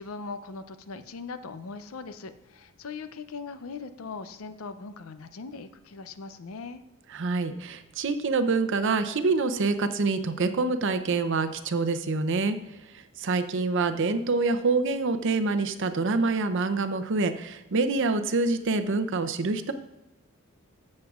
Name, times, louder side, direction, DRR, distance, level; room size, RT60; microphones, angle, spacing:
voice 1, 0.0-6.8, left 4 dB, 75° left, 11 dB, 0.6 m, -40 dB
voice 2, 7.1-12.6 12.9-19.7, right 3 dB, 60° right, 10 dB, 0.6 m, -26 dB
14.0 x 7.4 x 2.4 m, 0.99 s
head